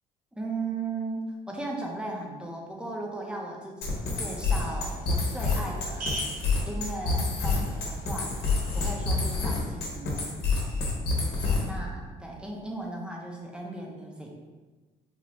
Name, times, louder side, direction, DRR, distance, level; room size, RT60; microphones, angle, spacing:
voice 1, 0.3-6.2 6.7-8.3 8.7-10.3 11.4-14.3, right 2 dB, 5° right, -1 dB, 0.6 m, -36 dB
sound 1, 3.8-11.8, left 3 dB, 75° left, 0.9 m, -28 dB
sound 2, 4.5-9.7, right 1 dB, 55° right, 1.0 m, -43 dB
4.0 x 2.3 x 3.0 m, 1.3 s
cardioid pair, 110°, 17 cm